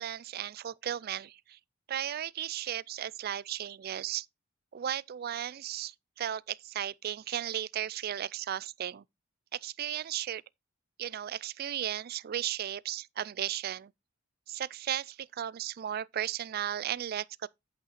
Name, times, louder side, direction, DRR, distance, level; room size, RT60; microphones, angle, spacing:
voice 1, 0.0-1.6 1.9-4.3 4.7-9.0 9.5-10.4 11.0-13.9 14.5-17.5, right 10 dB, 50° right, 0.3 m, -35 dB
8.4 x 5.4 x 4.1 m
head